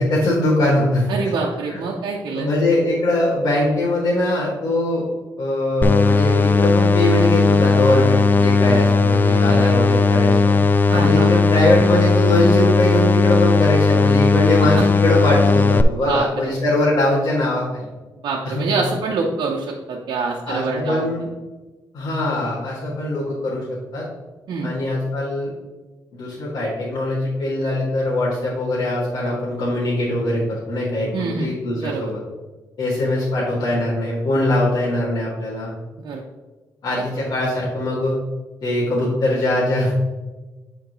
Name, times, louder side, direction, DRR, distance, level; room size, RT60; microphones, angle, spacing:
voice 1, 0.0-1.1 1.7-1.8 2.3-5.0 5.4-10.6 10.9-17.9 18.4-18.7 20.5-21.3 21.9-24.0 24.6-25.5 26.1-32.2 32.8-35.7 36.8-38.2 38.6-39.9, left 1 dB, 65° left, -10 dB, 2.3 m, -21 dB
voice 2, 1.1-2.5 9.4-9.8 10.9-11.3 14.6-14.9 16.0-16.5 18.2-21.0 24.5-24.7 31.1-31.5 31.8-32.1 36.0-36.2, right 4 dB, 70° right, -2 dB, 0.9 m, -25 dB
sound 1, 5.8-15.8, left 4 dB, 25° left, 0.3 m, -16 dB
9.3 x 4.5 x 3.1 m, 1.2 s
cardioid pair, 130°, 8 cm